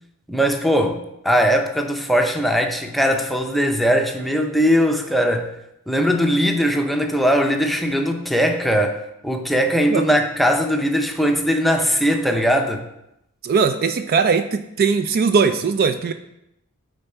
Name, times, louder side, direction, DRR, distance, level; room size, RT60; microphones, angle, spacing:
voice 1, 0.3-5.5 5.9-9.0 9.2-12.8, equal, ahead, 3 dB, 0.6 m, -20 dB
voice 2, 13.4-16.1, right 5 dB, 45° right, 9 dB, 0.3 m, -19 dB
8.9 x 3.9 x 4.4 m, 0.83 s
head